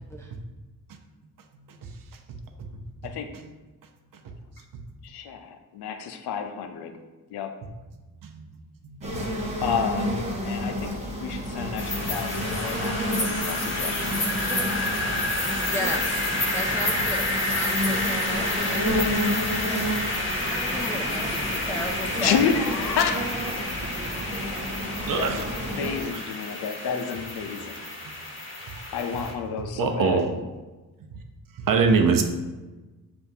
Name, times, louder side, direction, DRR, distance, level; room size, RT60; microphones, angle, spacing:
voice 1, 5.0-7.0 7.3-7.5 9.6-10.1 10.4-14.2 22.2-23.6 24.9-27.8 28.9-30.3, left 6 dB, 90° left, 6 dB, 0.5 m, -30 dB
sound 1, 9.0-26.0, equal, 15° right, 1.0 m, -31 dB
sound 2, 11.8-29.3, left 2 dB, 30° left, 1.4 m, -29 dB
voice 2, 15.7-16.2 16.5-18.8 20.3-22.4, equal, 10° left, 0 dB, 0.3 m, -34 dB
voice 3, 25.1-25.4 26.1-26.2 29.8-30.4 31.7-32.2, right 5 dB, 60° right, 5 dB, 0.7 m, -23 dB
7.0 x 2.6 x 2.7 m, 1.2 s
cardioid pair, 70°, 37 cm